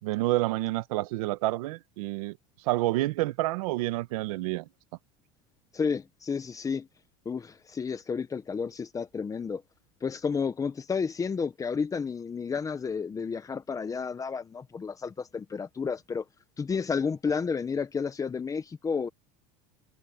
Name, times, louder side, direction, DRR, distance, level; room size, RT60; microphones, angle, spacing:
voice 1, 0.0-2.4 2.6-4.7, right 18 dB, 85° right, 1.5 m, -28 dB
voice 2, 5.7-6.9 7.2-9.6 10.0-16.2 16.6-19.1, left 5 dB, 20° left, 1.4 m, -31 dB
supercardioid pair, 135°, 18 cm